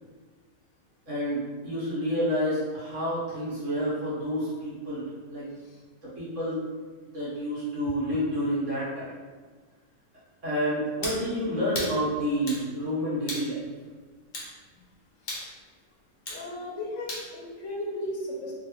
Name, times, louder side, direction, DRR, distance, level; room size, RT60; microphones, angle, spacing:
voice 1, 1.1-5.5 6.1-6.6 7.1-9.1 10.4-13.7, equal, 60° right, -9 dB, 1.5 m, -29 dB
sound 1, 11.0-11.2 11.7-12.0 12.5-12.6 13.3-13.5 14.3-14.5 15.3-15.5 16.3-16.4 17.1-17.3, left 1 dB, 45° left, 0.7 m, -34 dB
voice 2, 15.2-15.5 16.3-18.5, left 1 dB, 65° left, -3 dB, 1.0 m, -36 dB
3.3 x 2.4 x 2.9 m, 1.5 s
omnidirectional pair, 1.5 m